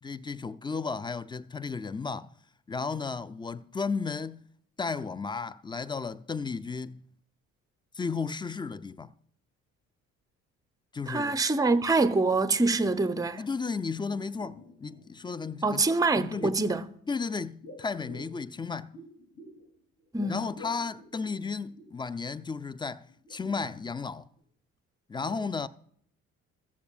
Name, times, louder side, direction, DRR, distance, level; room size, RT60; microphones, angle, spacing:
voice 1, 0.0-2.3 2.7-4.4 4.8-7.0 7.9-9.1 10.9-11.4 13.4-15.8 16.2-16.6 17.1-19.0 20.3-24.3 25.1-25.7, left 4 dB, 10° left, 0.4 m, -34 dB
voice 2, 11.1-13.4 15.6-16.9 20.1-20.4, right 3 dB, 10° right, 0.8 m, -25 dB
sound 1, 12.6-12.7 12.9-13.8 14.1-15.2 16.0-16.7 17.6-19.7 20.0-22.1 22.5-22.6 23.1-24.1 24.4-24.5, left 1 dB, 35° left, 3.2 m, -51 dB
15.0 x 14.5 x 2.4 m
figure-of-eight pair, 50°, 41 cm